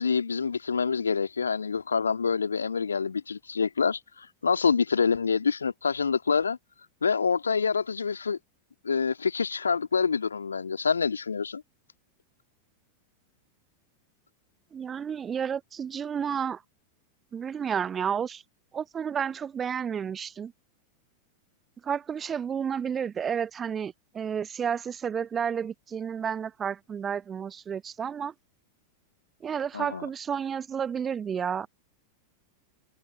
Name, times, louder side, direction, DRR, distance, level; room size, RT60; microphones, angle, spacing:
voice 1, 0.0-6.6 7.0-8.4 8.8-11.6 29.7-30.1, left 5 dB, 75° left, 1.9 m, -26 dB
voice 2, 14.7-16.6 17.3-18.4 18.7-20.5 21.8-28.3 29.4-31.7, right 7 dB, 20° right, 0.8 m, -31 dB
figure-of-eight pair, 90°, 0 cm